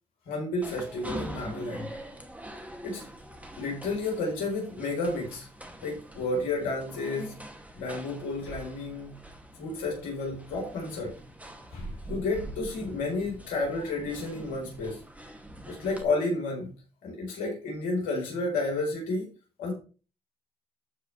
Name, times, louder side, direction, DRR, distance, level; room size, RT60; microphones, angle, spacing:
voice 1, 0.3-1.9 2.8-3.1 3.6-5.5 5.8-7.3 7.8-9.2 9.5-11.1 11.7-15.0 15.7-16.7 17.0-19.3 19.6-19.7, left 2 dB, 85° left, 0 dB, 4.0 m, -31 dB
sound 1, 0.6-16.0, right 1 dB, 10° right, 2.3 m, -44 dB
14.0 x 4.8 x 3.3 m, 0.36 s
supercardioid pair, 45°, 14 cm